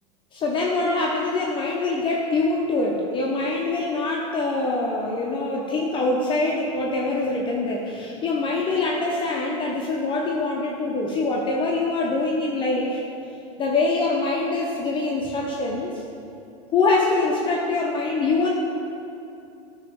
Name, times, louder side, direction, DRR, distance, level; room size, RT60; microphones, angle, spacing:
voice 1, 0.3-13.0 13.6-16.0 16.7-18.5, left 3 dB, 30° left, -2 dB, 0.8 m, -24 dB
9.1 x 3.1 x 4.6 m, 2.6 s
hypercardioid pair, 100°, 16 cm